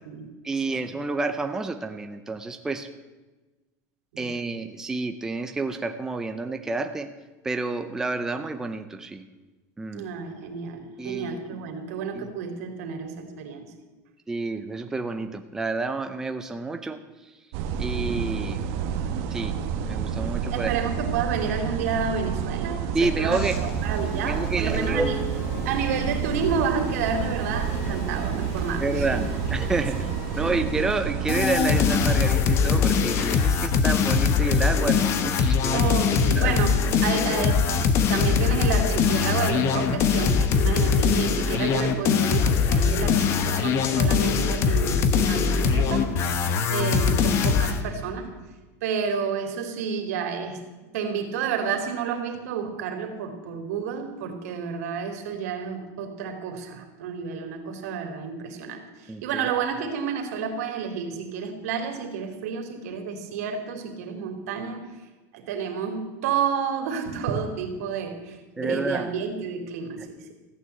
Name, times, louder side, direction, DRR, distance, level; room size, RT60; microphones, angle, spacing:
voice 1, 0.4-2.9 4.2-7.1 7.4-9.2 9.8-10.1 11.0-11.6 12.1-12.3 14.3-17.0 17.8-18.6 19.3-19.6 19.9-20.7 22.9-23.6 24.1-25.1 28.8-36.1 36.4-36.5 59.1-59.5 68.6-69.1, right 3 dB, 5° right, 7 dB, 0.6 m, -29 dB
voice 2, 9.9-13.7 20.5-25.2 25.6-29.2 30.3-30.6 35.7-46.4 46.7-48.3 48.8-50.6 50.9-64.9 65.3-70.1, right 6 dB, 80° right, 5 dB, 2.8 m, -30 dB
sound 1, 17.5-32.2, right 7 dB, 55° right, 1.4 m, -29 dB
sound 2, 23.0-35.0, left 2 dB, 85° left, 3.5 m, -40 dB
sound 3, 31.3-47.8, left 6 dB, 35° left, 1.0 m, -22 dB
15.0 x 9.4 x 8.0 m, 1.2 s
supercardioid pair, 170°, 8 cm